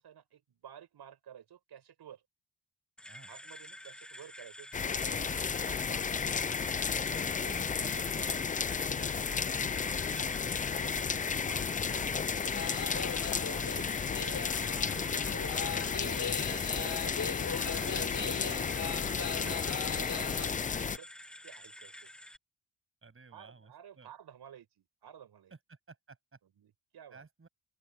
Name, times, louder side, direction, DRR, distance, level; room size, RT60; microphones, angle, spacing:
voice 1, 0.0-2.2 3.3-5.3 5.7-6.5 7.0-8.5 8.9-12.2 12.6-12.9 13.5-15.7 16.0-17.2 17.7-21.1 21.4-22.1 23.3-25.5 26.4-27.3, right 9 dB, 75° right, 5.6 m, -52 dB
sound 1, 3.0-22.4, equal, ahead, 1.4 m, -49 dB
sound 2, 4.7-21.0, left 6 dB, 20° left, 0.3 m, -33 dB
voice 2, 5.3-5.8 7.4-7.9 17.8-18.3 23.0-24.1 25.7-26.4 27.1-27.5, right 4 dB, 30° right, 7.3 m, -54 dB
sound 3, 12.4-20.5, left 6 dB, 50° left, 3.3 m, -39 dB
open air
cardioid pair, 100°, 39 cm